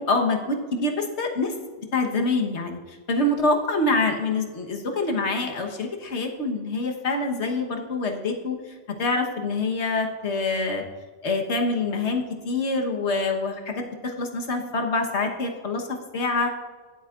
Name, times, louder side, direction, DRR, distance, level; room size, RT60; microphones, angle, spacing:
voice 1, 0.0-1.5 1.9-8.6 9.0-10.8 11.2-16.6, left 2 dB, 75° left, 3 dB, 1.5 m, -26 dB
17.0 x 8.2 x 2.5 m, 1.4 s
omnidirectional pair, 1.2 m